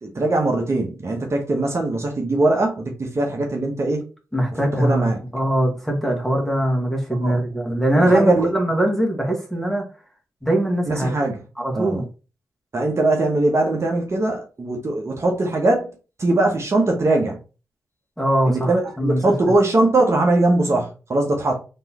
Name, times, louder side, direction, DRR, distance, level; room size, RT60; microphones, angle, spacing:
voice 1, 0.0-4.0 4.8-5.2 7.2-7.4 7.9-8.5 10.9-11.4 11.7-12.0 12.7-17.4 18.4-21.6, right 2 dB, 45° right, 1.1 m, -21 dB
voice 2, 4.3-9.8 10.4-11.1 11.6-12.0 18.2-18.7 19.0-19.2, right 1 dB, 5° left, 1.6 m, -21 dB
3.5 x 3.1 x 2.9 m
supercardioid pair, 45°, 7 cm